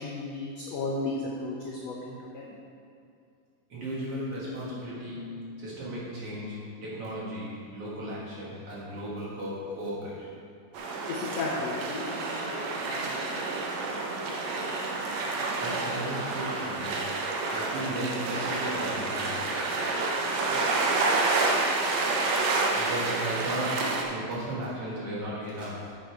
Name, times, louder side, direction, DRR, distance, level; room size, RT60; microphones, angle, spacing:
voice 1, 0.0-2.4 11.1-13.1 20.5-20.9, left 3 dB, 75° left, -2 dB, 1.5 m, -35 dB
voice 2, 3.7-10.3 15.6-17.1 17.5-19.6 22.7-26.0, equal, 50° right, -7 dB, 2.4 m, -36 dB
sound 1, 10.7-24.0, right 3 dB, 70° right, 1.7 m, -29 dB
9.5 x 7.4 x 4.7 m, 2.4 s
omnidirectional pair, 4.1 m